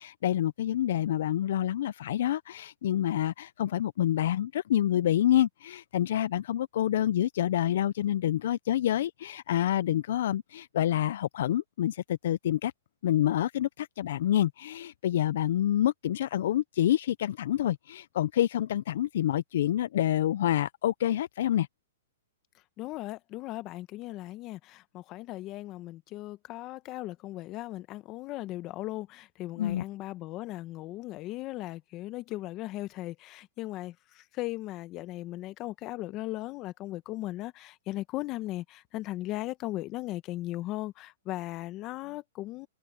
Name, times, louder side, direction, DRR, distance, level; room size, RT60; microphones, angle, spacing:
voice 1, 0.0-12.7 13.0-21.7 29.6-29.8, left 12 dB, 60° left, 0.4 m, -27 dB
voice 2, 22.8-42.7, left 17 dB, 30° left, 1.3 m, -37 dB
hypercardioid pair, 145°, 0 cm